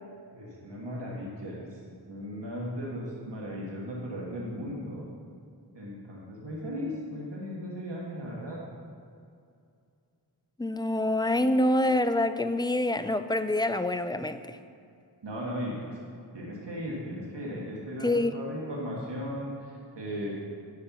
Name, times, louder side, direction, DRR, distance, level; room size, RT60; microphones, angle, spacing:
voice 1, 0.3-1.8 2.1-5.1 5.7-8.6 15.2-16.0 16.3-20.4, equal, 85° right, -4 dB, 1.5 m, -36 dB
voice 2, 10.6-14.6 18.0-18.3, left 1 dB, 10° left, 10 dB, 0.4 m, -26 dB
11.5 x 4.3 x 7.0 m, 2.4 s
wide cardioid pair, 55°, 42 cm